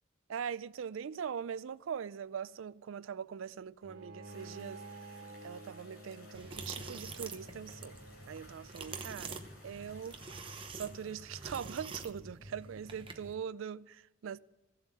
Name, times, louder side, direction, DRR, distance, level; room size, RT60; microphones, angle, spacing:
voice 1, 0.3-4.8 5.4-7.9 8.3-14.4, right 7 dB, 80° right, 0.4 m, -42 dB
Bowed string instrument, 3.8-9.0, right 2 dB, 50° right, 3.6 m, -52 dB
sound 1, 4.2-11.7, left 1 dB, 50° left, 4.7 m, -59 dB
sound 2, 6.3-13.3, right 3 dB, 25° right, 0.9 m, -46 dB
15.5 x 7.7 x 6.2 m
head